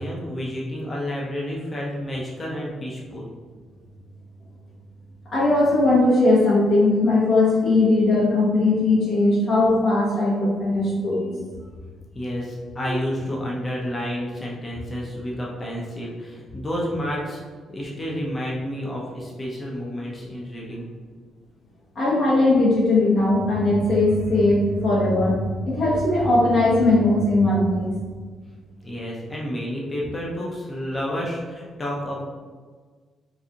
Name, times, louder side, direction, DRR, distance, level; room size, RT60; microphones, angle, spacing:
voice 1, 0.0-3.3 12.1-17.4 17.7-20.9 28.8-32.2, equal, 25° left, -4 dB, 0.7 m, -30 dB
voice 2, 5.3-11.4 12.9-13.0 22.0-27.9, left 2 dB, 50° left, -5 dB, 1.2 m, -19 dB
3.9 x 2.5 x 2.9 m, 1.5 s
cardioid pair, 90°, 0 cm